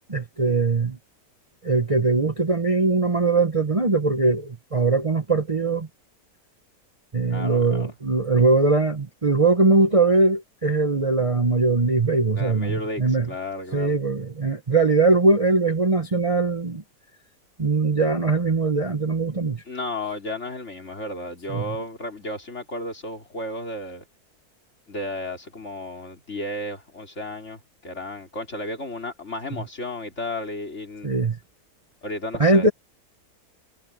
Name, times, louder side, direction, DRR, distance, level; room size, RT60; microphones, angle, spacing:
voice 1, 0.1-1.0 1.6-5.9 7.1-13.3 13.7-16.8 17.6-19.6 21.5-21.6 31.0-31.4 32.4-32.7, right 3 dB, 25° right, 1.1 m, -21 dB
voice 2, 7.3-7.9 12.4-14.0 19.7-24.0 24.9-31.1 32.0-32.7, left 1 dB, 45° left, 4.2 m, -33 dB
omnidirectional pair, 1.6 m